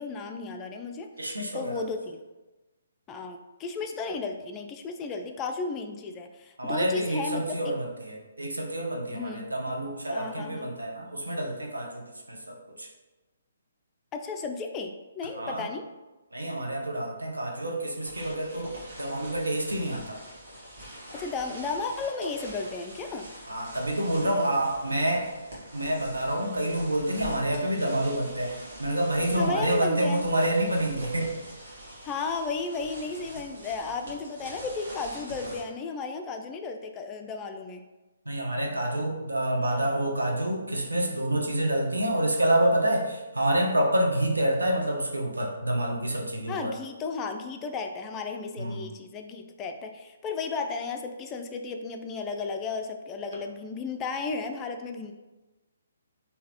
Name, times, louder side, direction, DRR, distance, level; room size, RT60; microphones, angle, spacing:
voice 1, 0.0-1.1 1.5-2.2 3.1-7.6 9.1-9.5 10.1-10.7 14.1-15.8 21.1-23.3 29.4-30.2 32.0-37.8 46.5-55.1, left 4 dB, 20° left, 5 dB, 0.3 m, -34 dB
voice 2, 1.2-1.8 6.6-12.0 12.3-12.9 15.3-15.6 16.3-20.2 23.5-25.3 25.7-31.3 38.3-46.7 48.6-48.9, right 1 dB, 80° right, 0 dB, 0.7 m, -28 dB
sound 1, 18.0-35.6, equal, 55° right, 1.4 m, -44 dB
3.8 x 2.8 x 2.8 m, 1.1 s
figure-of-eight pair, 135°, 0 cm